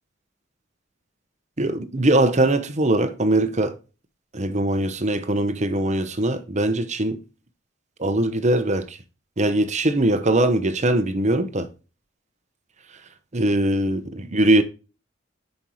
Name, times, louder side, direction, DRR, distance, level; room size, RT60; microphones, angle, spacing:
voice 1, 1.6-3.7 4.3-7.2 8.0-9.0 9.4-11.7 13.3-14.6, right 1 dB, 35° right, 0.9 m, -21 dB
11.0 x 5.4 x 3.1 m
head